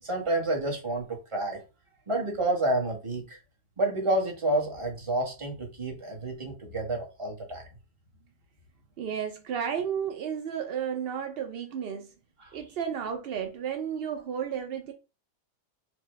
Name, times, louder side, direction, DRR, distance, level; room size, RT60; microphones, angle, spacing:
voice 1, 0.0-1.6 2.1-3.4 3.8-7.7 12.4-12.6, right 1 dB, 25° right, 0.9 m, -29 dB
voice 2, 9.0-12.1 12.5-14.9, right 8 dB, 85° right, 0.5 m, -32 dB
4.4 x 2.2 x 3.0 m
omnidirectional pair, 1.6 m